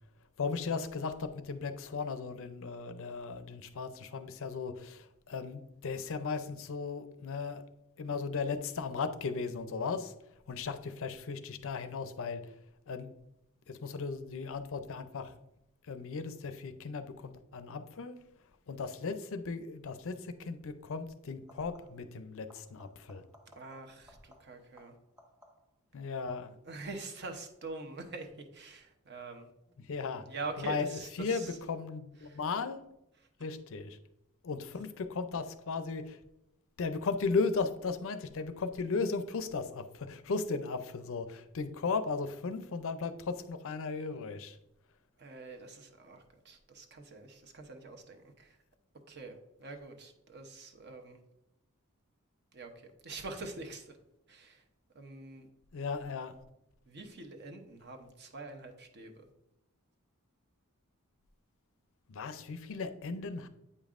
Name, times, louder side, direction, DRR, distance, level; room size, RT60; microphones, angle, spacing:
voice 1, 0.4-7.6 8.0-10.1 10.5-12.5 12.9-13.1 13.7-15.3 15.9-18.2 18.7-23.2 25.9-26.5 29.8-30.2 30.6-32.8 33.4-34.0 34.4-36.2 36.8-44.6 55.7-56.3 62.1-63.5, left 4 dB, 65° left, 10 dB, 0.5 m, -36 dB
sound 1, 21.5-22.1 22.5-25.9 31.3-31.9 33.4-33.5, equal, 15° right, 1.1 m, -62 dB
voice 2, 23.5-24.9 26.6-29.5 30.3-31.6 32.2-32.4 45.2-48.6 49.1-51.2 52.5-54.0 54.3-54.6 54.9-55.5 56.9-59.2, right 3 dB, 50° right, 5 dB, 0.8 m, -45 dB
8.4 x 5.3 x 2.5 m, 0.84 s
head